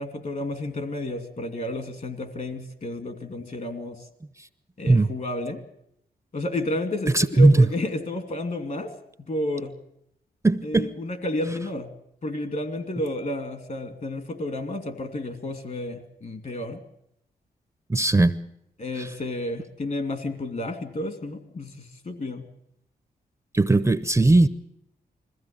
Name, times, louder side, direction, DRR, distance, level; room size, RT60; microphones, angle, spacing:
voice 1, 0.0-4.1 4.8-5.6 6.3-8.9 9.3-9.8 10.6-11.9 12.2-16.8 18.8-22.5, left 1 dB, 50° left, 9 dB, 2.6 m, -31 dB
voice 2, 7.1-7.7 10.4-10.9 17.9-18.3 19.0-19.1 23.5-24.5, right 2 dB, 15° right, 14 dB, 0.7 m, -18 dB
21.0 x 15.5 x 8.8 m, 0.75 s
cardioid pair, 75°, 16 cm